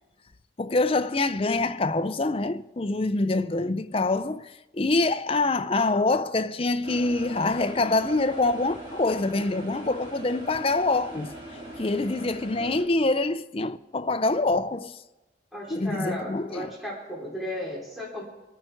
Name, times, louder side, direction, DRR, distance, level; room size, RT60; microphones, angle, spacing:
voice 1, 0.6-11.3 11.8-15.0 15.7-16.7, left 2 dB, 30° left, 0.5 m, -25 dB
sound 1, 6.8-12.8, right 1 dB, 30° right, 4.6 m, -41 dB
voice 2, 15.5-18.2, left 1 dB, ahead, 3.2 m, -35 dB
24.5 x 9.2 x 4.6 m
head